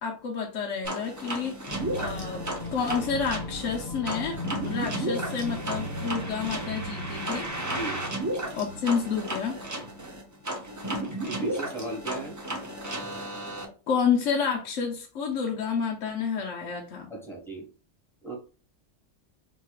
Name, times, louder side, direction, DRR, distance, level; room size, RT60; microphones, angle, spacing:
voice 1, 0.0-1.7 2.0-2.4 2.7-7.5 8.5-9.6 13.9-17.1, left 6 dB, 75° left, 0 dB, 1.0 m, -29 dB
sound 1, 0.8-13.7, right 1 dB, 20° right, 0.5 m, -34 dB
sound 2, 1.7-10.3, left 1 dB, 35° left, 2.3 m, -38 dB
voice 2, 11.2-12.4 17.1-17.7 18.2-18.3, right 3 dB, ahead, -2 dB, 1.4 m, -35 dB
4.3 x 3.0 x 2.4 m, 0.37 s
omnidirectional pair, 1.3 m